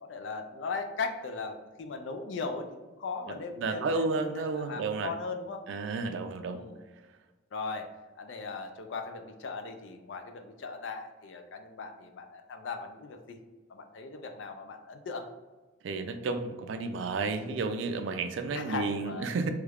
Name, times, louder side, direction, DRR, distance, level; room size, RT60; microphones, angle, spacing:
voice 1, 0.0-4.1 4.3-5.6 6.4-6.8 7.5-7.9 8.2-13.4 13.7-15.3 18.5-19.4, left 4 dB, 65° left, 6 dB, 0.4 m, -38 dB
voice 2, 3.6-5.1 5.7-6.6 15.8-19.5, right 3 dB, 70° right, 8 dB, 0.3 m, -31 dB
3.1 x 2.4 x 3.3 m, 1.2 s
head